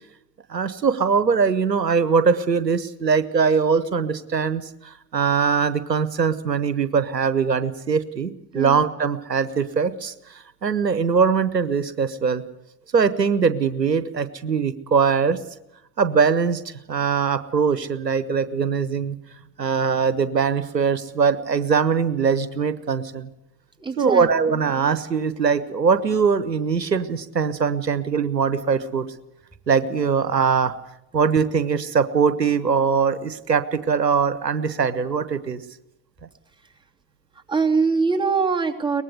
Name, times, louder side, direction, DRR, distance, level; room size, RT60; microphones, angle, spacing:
voice 1, 0.5-12.4 12.9-15.4 16.0-19.2 19.6-23.3 24.0-29.1 29.7-30.7 31.1-35.6, right 6 dB, 90° right, 14 dB, 1.1 m, -21 dB
voice 2, 23.8-24.3 37.5-39.0, right 4 dB, 10° right, 2 dB, 2.8 m, -22 dB
23.5 x 19.5 x 8.1 m, 0.85 s
figure-of-eight pair, 70°, 49 cm